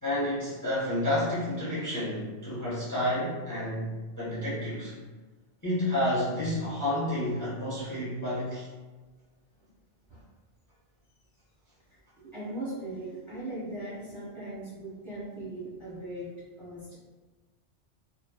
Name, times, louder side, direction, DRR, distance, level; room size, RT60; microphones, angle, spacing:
voice 1, 0.0-3.9 4.2-4.9 5.6-8.7, left 1 dB, 20° left, -9 dB, 0.6 m, -30 dB
voice 2, 12.2-16.3 16.6-16.9, right 1 dB, 25° right, -10 dB, 0.9 m, -39 dB
2.7 x 2.2 x 2.2 m, 1.3 s
omnidirectional pair, 1.2 m